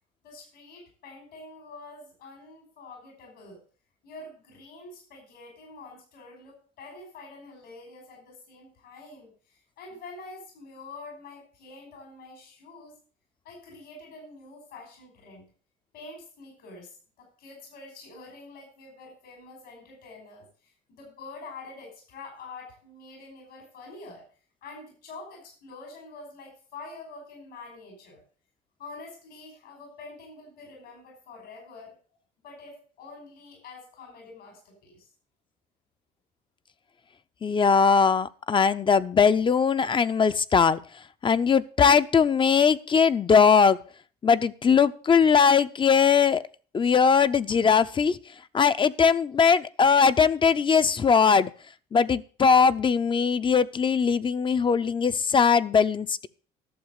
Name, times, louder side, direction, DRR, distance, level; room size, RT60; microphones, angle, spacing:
voice 1, 0.2-3.6 4.0-12.9 13.4-15.4 15.9-24.3 24.6-28.2 28.8-31.9 32.4-35.1, left 3 dB, 80° left, 1 dB, 5.3 m, -46 dB
voice 2, 37.4-40.8 41.2-43.8 44.2-46.4 46.7-48.2 48.5-51.5 51.9-56.3, left 6 dB, 30° left, 13 dB, 0.6 m, -20 dB
12.0 x 7.0 x 6.5 m, 0.40 s
cardioid pair, 110°, 17 cm